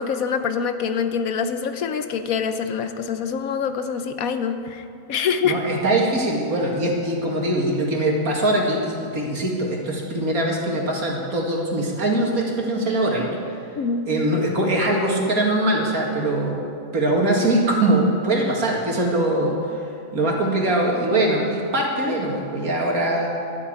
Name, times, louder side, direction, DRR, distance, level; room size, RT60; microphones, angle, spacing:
voice 1, 0.0-5.6 13.8-14.1, left 6 dB, 70° left, 9 dB, 1.1 m, -25 dB
voice 2, 5.4-13.4 14.1-16.6 16.9-19.6 20.1-23.3, right 1 dB, 65° right, -1 dB, 2.6 m, -22 dB
12.5 x 8.0 x 9.7 m, 2.5 s
omnidirectional pair, 1.6 m